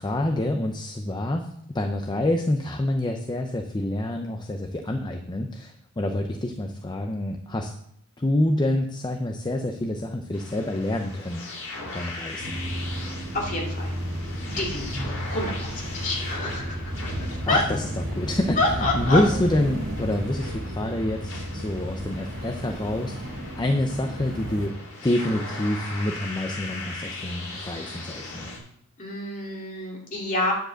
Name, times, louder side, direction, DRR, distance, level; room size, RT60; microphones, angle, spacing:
voice 1, 0.0-1.5 1.7-7.7 8.2-11.4 11.9-12.6 17.5-17.9 18.1-18.6 18.9-23.2 23.6-24.7 25.0-28.5, left 1 dB, 20° left, 4 dB, 0.6 m, -27 dB
sound 1, 10.3-28.6, left 2 dB, 60° left, 3.3 m, -39 dB
voice 2, 11.9-12.2 13.3-13.9 14.4-16.9 17.5-17.6 18.6-19.2 29.0-30.5, left 2 dB, 35° left, -2 dB, 2.7 m, -28 dB
sound 2, 12.4-24.7, equal, 65° right, 2.1 m, -33 dB
9.3 x 5.1 x 7.7 m, 0.70 s
head